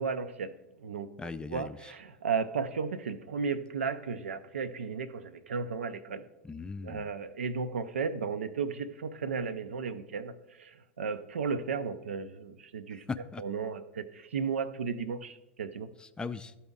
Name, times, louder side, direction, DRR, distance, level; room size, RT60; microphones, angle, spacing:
voice 1, 0.0-1.1 1.5-6.3 6.8-13.0 13.4-15.9, right 5 dB, 85° right, 11 dB, 0.4 m, -34 dB
voice 2, 1.2-1.9 6.4-7.1 13.1-13.4 16.0-16.6, left 4 dB, 15° left, 12 dB, 0.3 m, -39 dB
12.0 x 4.1 x 3.6 m, 0.96 s
hypercardioid pair, 95°, 6 cm